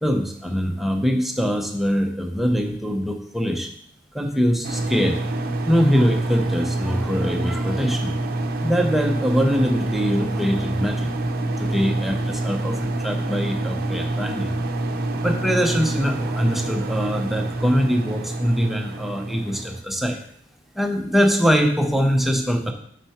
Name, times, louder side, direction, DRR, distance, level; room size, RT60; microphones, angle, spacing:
voice 1, 0.0-3.7 4.1-5.2 5.7-8.1 8.6-11.1 11.4-14.5 15.2-20.2 20.7-22.7, equal, ahead, 3 dB, 0.7 m, -23 dB
sound 1, 4.6-19.8, right 2 dB, 50° right, 0.6 m, -26 dB
6.4 x 4.3 x 5.7 m, 0.64 s
head